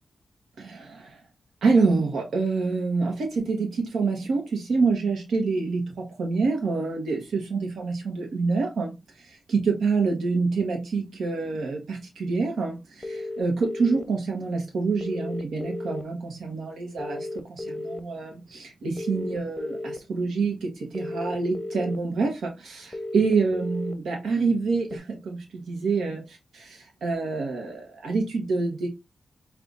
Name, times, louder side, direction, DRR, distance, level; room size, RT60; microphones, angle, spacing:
voice 1, 0.6-1.2 1.6-28.9, right 4 dB, 85° right, 0.9 m, -27 dB
sound 1, 13.0-14.0 15.0-16.0 17.0-18.0 19.0-20.0 20.9-22.0 22.9-23.9 24.9-25.0, left 2 dB, 30° left, 0.6 m, -34 dB
5.2 x 2.3 x 2.4 m
cardioid pair, 65°, 0 cm